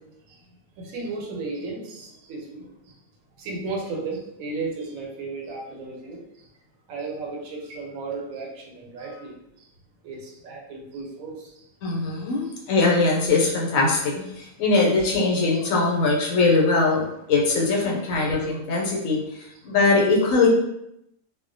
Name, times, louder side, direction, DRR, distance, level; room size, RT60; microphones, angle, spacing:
voice 1, 0.3-3.0 3.4-6.5 6.9-9.7 10.0-11.7 12.4-12.6 14.4-14.5 18.2-18.3 18.8-18.9 19.5-19.7, right 3 dB, 85° right, 0 dB, 1.0 m, -35 dB
voice 2, 11.8-17.0 17.3-19.2 19.6-20.5, left 3 dB, 80° left, -2 dB, 1.0 m, -21 dB
2.3 x 2.1 x 2.5 m, 0.81 s
omnidirectional pair, 1.4 m